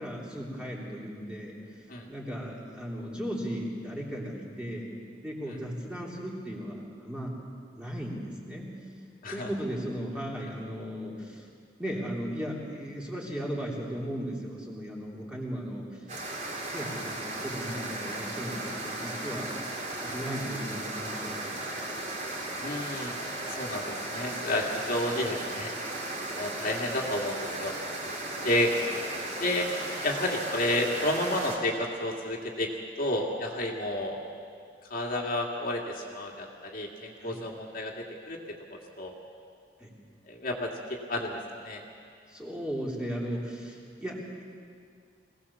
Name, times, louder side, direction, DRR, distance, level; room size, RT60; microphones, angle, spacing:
voice 1, 0.0-1.6 2.1-4.9 5.2-7.3 7.7-8.7 9.3-11.5 11.8-15.9 16.7-19.5 20.1-21.9 37.2-37.4 39.8-39.9 42.3-44.4, equal, 5° right, -4 dB, 3.3 m, -36 dB
sound 1, 16.1-31.6, right 2 dB, 45° right, 3.7 m, -36 dB
voice 2, 22.6-23.2 23.6-25.7 26.3-27.7 28.4-28.7 29.4-29.7 30.0-32.7 33.0-34.2 34.9-38.4 38.7-39.1 40.3-40.7 41.1-41.8, left 1 dB, 55° left, -1 dB, 2.2 m, -31 dB
22.0 x 17.5 x 7.2 m, 2.2 s
head